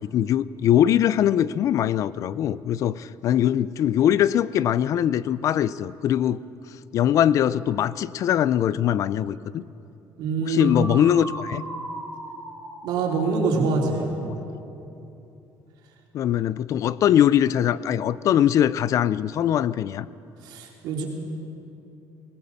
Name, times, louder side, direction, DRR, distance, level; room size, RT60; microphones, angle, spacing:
voice 1, 0.0-6.4 6.9-9.6 10.4-11.6 16.1-20.1, left 10 dB, 45° left, 18 dB, 0.5 m, -22 dB
voice 2, 10.2-10.7 12.8-14.1 20.4-21.0, right 4 dB, 75° right, -1 dB, 3.9 m, -25 dB
sound 1, 10.6-14.5, right 1 dB, ahead, 3.7 m, -38 dB
20.5 x 19.5 x 7.1 m, 2.8 s
cardioid pair, 170°, 8 cm